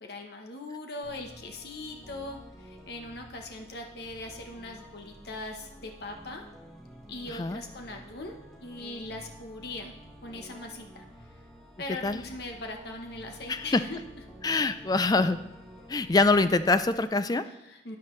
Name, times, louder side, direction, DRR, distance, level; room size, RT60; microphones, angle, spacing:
voice 1, 0.0-6.4 7.1-9.9 10.2-11.0 11.8-14.0 17.4-18.0, left 2 dB, 55° left, 3 dB, 1.0 m, -40 dB
sound 1, 1.0-17.0, equal, 5° left, 1.4 m, -50 dB
voice 2, 14.4-15.4 15.9-17.4, left 3 dB, 20° left, 12 dB, 0.3 m, -24 dB
12.0 x 9.6 x 3.2 m, 0.89 s
head